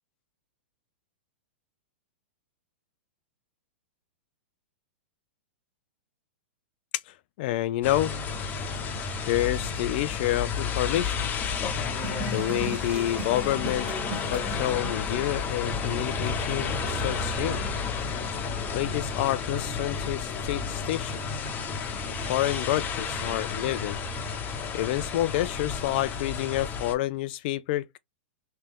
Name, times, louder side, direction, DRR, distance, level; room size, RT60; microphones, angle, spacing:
voice 1, 7.1-8.1 9.3-11.3 12.3-13.9 14.3-17.6 18.7-21.4 22.1-24.0 24.7-28.0, left 14 dB, 55° left, 0.5 m, -29 dB
sound 1, 7.8-26.9, left 5 dB, 30° left, 1.0 m, -31 dB
sound 2, 12.0-14.7, right 4 dB, 15° right, 1.3 m, -37 dB
3.3 x 2.8 x 3.6 m
hypercardioid pair, 115°, 6 cm